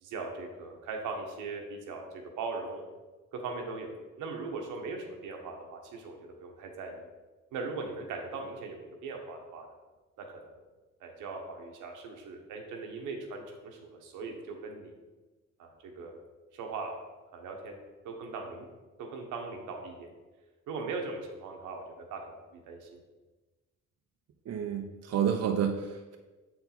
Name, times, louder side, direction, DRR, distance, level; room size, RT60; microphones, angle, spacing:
voice 1, 0.0-2.8 3.3-3.9 4.2-7.0 7.5-9.7 10.2-10.5 11.0-14.9 15.6-15.7 16.0-16.1 16.5-16.9 17.3-17.8 18.0-18.7 19.0-20.1 20.7-22.3 22.6-23.0, right 4 dB, 90° right, 2 dB, 1.2 m, -39 dB
voice 2, 24.5-26.2, right 8 dB, 55° right, 3 dB, 0.7 m, -30 dB
7.6 x 4.5 x 4.0 m, 1.2 s
cardioid pair, 90°, 30 cm